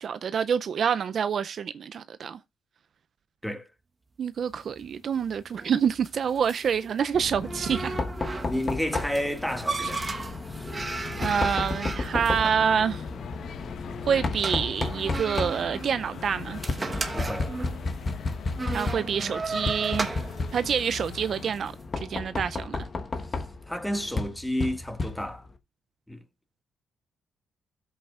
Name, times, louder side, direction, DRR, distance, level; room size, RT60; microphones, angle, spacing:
voice 1, 0.0-2.4 4.2-7.9 9.8-9.9 11.2-13.0 14.1-16.6 18.7-20.1 20.5-22.8, right 7 dB, 55° right, 0.4 m, -27 dB
sound 1, 4.5-21.7, right 3 dB, 25° right, 1.1 m, -36 dB
Knock, 7.1-25.6, left 3 dB, 35° left, 1.2 m, -33 dB
voice 2, 8.4-10.0 10.5-10.7 17.1-17.5 23.7-25.5 26.1-26.2, equal, 5° left, 1.7 m, -31 dB
sound 2, 11.2-21.5, left 7 dB, 65° left, 0.9 m, -42 dB
14.5 x 7.9 x 2.4 m
cardioid pair, 90°, 0 cm